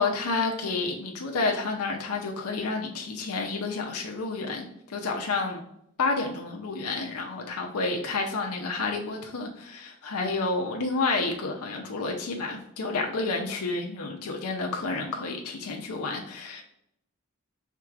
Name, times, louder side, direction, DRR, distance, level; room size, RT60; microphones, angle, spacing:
voice 1, 0.0-5.7 6.0-16.6, left 3 dB, 90° left, 2 dB, 0.6 m, -30 dB
4.6 x 3.6 x 2.4 m, 0.75 s
head